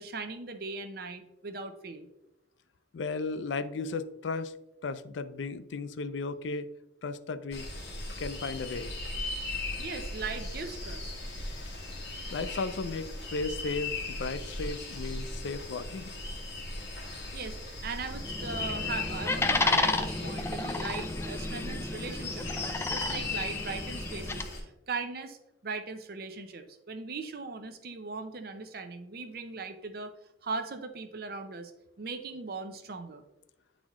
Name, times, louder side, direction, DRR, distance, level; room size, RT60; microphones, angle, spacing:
voice 1, 0.0-2.1 9.8-11.1 17.3-25.4 25.6-30.1 30.4-31.7 32.0-33.2, right 4 dB, 55° right, 8 dB, 0.6 m, -39 dB
voice 2, 2.9-4.6 4.8-6.7 7.0-7.7 8.2-8.9 12.3-16.1, left 3 dB, 90° left, 13 dB, 0.5 m, -35 dB
sound 1, 7.5-24.6, left 2 dB, 60° left, 1.8 m, -38 dB
sound 2, 18.1-24.4, left 2 dB, 15° left, 0.4 m, -32 dB
9.6 x 4.1 x 3.0 m, 0.87 s
head